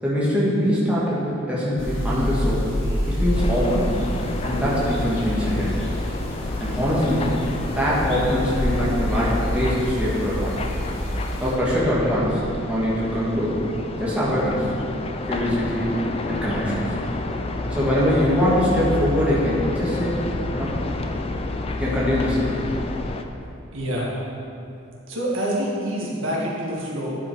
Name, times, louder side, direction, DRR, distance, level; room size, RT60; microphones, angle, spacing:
voice 1, 0.0-2.6 3.1-3.9 4.4-5.8 6.6-7.3 7.7-10.6 11.4-12.4 12.7-13.6 14.0-14.6 15.3-16.9 17.7-20.2 20.5-20.7 21.8-22.5, equal, 5° right, -8 dB, 1.5 m, -23 dB
sound 1, 1.8-11.5, equal, 75° left, 2.0 m, -27 dB
sound 2, 3.3-23.2, left 2 dB, 30° left, 0.4 m, -30 dB
voice 2, 23.7-24.1 25.1-27.2, equal, 80° right, -5 dB, 1.7 m, -26 dB
9.8 x 5.5 x 4.6 m, 2.7 s
head